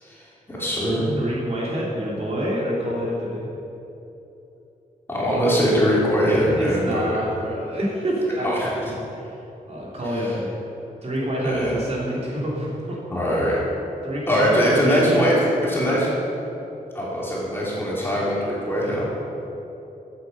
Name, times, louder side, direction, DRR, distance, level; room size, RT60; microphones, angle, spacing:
voice 1, 0.0-1.1 5.1-7.3 8.4-8.9 10.0-10.4 11.4-11.7 13.1-13.6 14.3-16.1 16.9-19.1, equal, 15° left, -6 dB, 3.1 m, -22 dB
voice 2, 1.2-3.5 6.5-9.4 9.7-10.5 11.0-13.0 14.0-15.3, equal, 45° right, -5 dB, 3.1 m, -27 dB
14.5 x 8.8 x 5.4 m, 2.9 s
wide cardioid pair, 155°, 15 cm